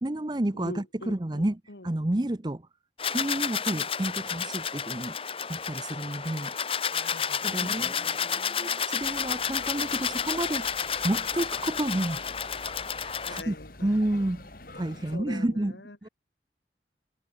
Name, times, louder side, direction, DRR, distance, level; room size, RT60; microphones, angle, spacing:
voice 1, 0.0-2.6 3.1-5.1 5.5-6.5 7.4-10.7 11.0-12.2 13.3-13.5 13.8-14.4 14.7-15.7 16.0-16.1, right 1 dB, 25° right, 0.7 m, -30 dB
voice 2, 0.5-1.9 6.9-8.8 13.3-14.4 14.6-16.0, left 2 dB, 80° left, 2.5 m, -45 dB
sound 1, 3.0-13.4, left 7 dB, 30° left, 1.1 m, -31 dB
sound 2, 9.0-15.2, left 3 dB, 50° left, 2.4 m, -46 dB
head